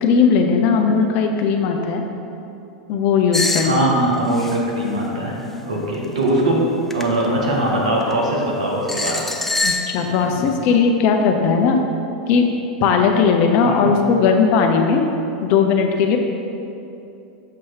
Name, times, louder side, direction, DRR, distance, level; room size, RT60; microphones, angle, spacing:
voice 1, 0.0-2.0 2.9-3.8 9.6-11.8 12.3-12.5 12.8-15.0 15.4-16.2, left 5 dB, 50° left, 3 dB, 0.6 m, -17 dB
sound 1, 3.3-3.7 4.3-4.6 6.0-6.3 6.9-7.0 8.0-8.1 8.9-9.9, left 2 dB, 5° left, 0.5 m, -23 dB
voice 2, 3.6-5.4 5.6-6.6 6.9-9.2 10.0-10.3 13.6-13.9, right 1 dB, 85° right, -3 dB, 1.2 m, -21 dB
6.9 x 3.0 x 4.7 m, 2.7 s
hypercardioid pair, 95°, 4 cm